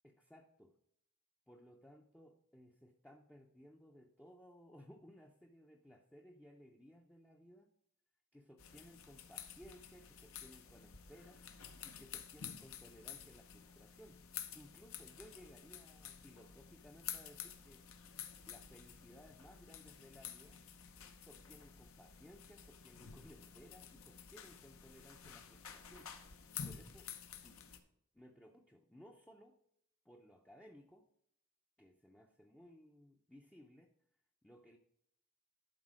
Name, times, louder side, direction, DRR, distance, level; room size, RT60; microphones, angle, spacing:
voice 1, 0.0-0.7 1.5-7.7 8.3-11.4 11.8-17.8 18.5-20.6 21.2-26.1 26.6-27.1 27.4-27.6 28.1-29.6 30.0-31.1 31.8-33.9 34.4-34.8, equal, 5° left, 1 dB, 0.5 m, -60 dB
sound 1, 8.6-27.8, left 8 dB, 75° left, 0.9 m, -51 dB
11.5 x 4.1 x 4.9 m, 0.74 s
head